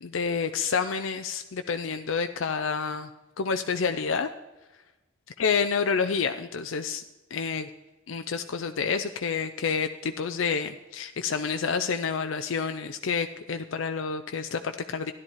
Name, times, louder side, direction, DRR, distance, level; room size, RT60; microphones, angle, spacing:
voice 1, 0.0-3.1 3.4-4.3 5.4-7.0 7.3-7.7 8.1-15.1, left 5 dB, 75° left, 8 dB, 0.5 m, -29 dB
13.5 x 11.0 x 4.6 m, 1.1 s
head